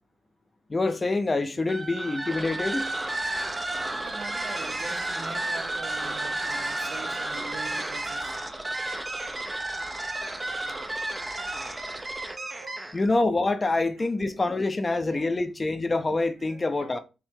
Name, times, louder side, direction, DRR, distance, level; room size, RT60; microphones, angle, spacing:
voice 1, 0.7-2.9 12.9-17.0, left 2 dB, 30° left, 0.6 m, -26 dB
sound 1, 1.6-13.1, right 2 dB, 20° right, 0.6 m, -32 dB
voice 2, 3.9-9.1 10.2-10.4 10.9-11.5 11.9-13.0 14.0-14.1 14.3-14.7 15.0-15.4 16.2-17.0, right 5 dB, 70° right, 0.7 m, -45 dB
4.4 x 2.1 x 3.7 m
supercardioid pair, 55°, 0 cm